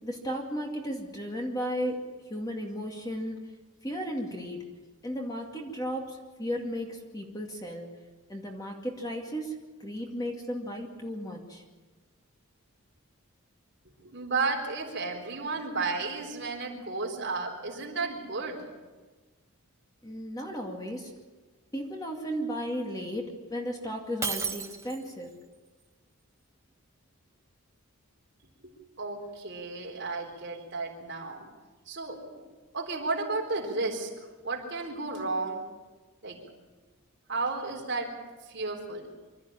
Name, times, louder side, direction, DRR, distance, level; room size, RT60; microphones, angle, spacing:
voice 1, 0.0-3.4 3.8-4.8 5.0-8.0 8.3-11.6 20.0-21.1 21.7-25.3, equal, 15° left, 1 dB, 2.2 m, -35 dB
voice 2, 14.0-18.6 28.6-31.5 31.9-32.4 32.7-34.1 34.4-35.6 36.2-36.4 37.3-38.1 38.5-39.1, right 3 dB, 50° right, 0 dB, 4.0 m, -33 dB
Shatter, 24.2-25.2, right 5 dB, 15° right, 0.9 m, -33 dB
25.0 x 13.5 x 8.9 m, 1.3 s
head